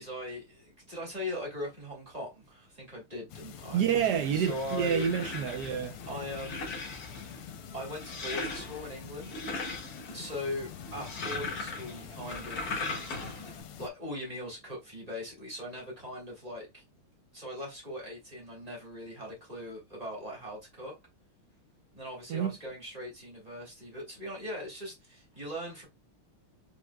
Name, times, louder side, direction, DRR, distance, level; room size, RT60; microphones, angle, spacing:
voice 1, 0.0-3.8 4.3-5.1 6.1-6.7 7.7-9.3 10.1-12.9 13.8-16.8 17.3-20.9 21.9-25.9, left 1 dB, 20° right, 1.6 m, -40 dB
sound 1, 3.3-13.9, left 8 dB, 90° left, 1.5 m, -46 dB
voice 2, 3.7-6.0 22.3-22.6, right 8 dB, 75° right, 0.9 m, -28 dB
sound 2, 3.9-13.6, left 3 dB, 45° left, 1.6 m, -40 dB
5.2 x 3.2 x 2.3 m
omnidirectional pair, 2.4 m